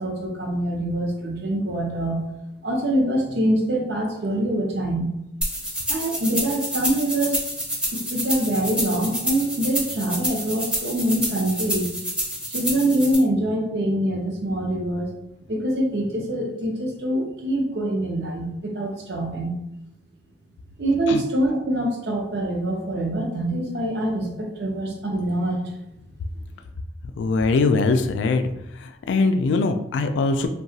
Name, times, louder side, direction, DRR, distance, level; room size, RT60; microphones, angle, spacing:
voice 1, 0.0-2.2 2.6-5.1 5.9-7.4 7.9-11.9 12.5-15.1 15.5-19.5 20.8-25.6, right 1 dB, 65° right, 0 dB, 0.6 m, -24 dB
sound 1, 5.4-13.1, equal, 5° right, 0.6 m, -28 dB
voice 2, 27.2-28.4 28.7-30.5, left 3 dB, 85° left, 7 dB, 0.3 m, -21 dB
2.8 x 2.3 x 2.7 m, 0.83 s
head